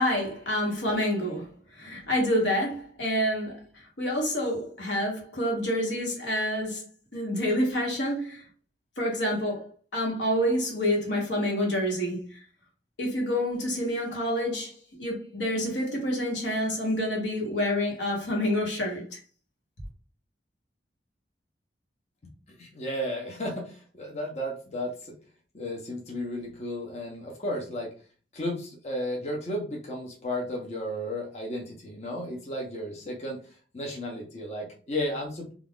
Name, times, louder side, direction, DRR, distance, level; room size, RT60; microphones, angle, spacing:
voice 1, 0.0-1.5 1.7-6.8 7.1-8.5 9.0-9.7 9.9-12.4 13.0-19.2, equal, 85° left, 1.2 m, -28 dB
voice 2, 22.2-25.1 25.5-27.9 28.3-35.5, left 1 dB, 35° left, 0.6 m, -34 dB
2.4 x 2.3 x 3.5 m
head